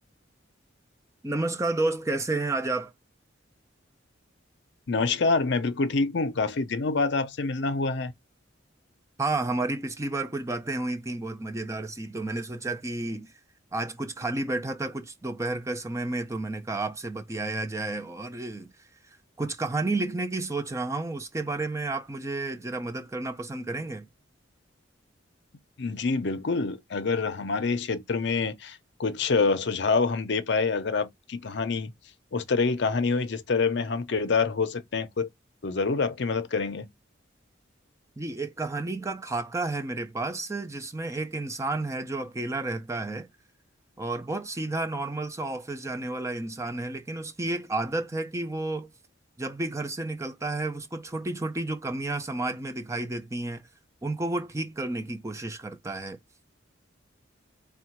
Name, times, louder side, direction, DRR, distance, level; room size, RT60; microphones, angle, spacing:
voice 1, 1.2-2.9 9.2-13.3 13.7-18.7 19.1-24.1 38.2-43.3 44.0-48.9 49.4-53.7 54.0-56.2, right 2 dB, 15° right, 0.5 m, -31 dB
voice 2, 4.9-8.1 25.8-31.9 32.3-35.3 35.6-36.9, left 4 dB, 60° left, 0.6 m, -26 dB
3.7 x 2.3 x 4.4 m
head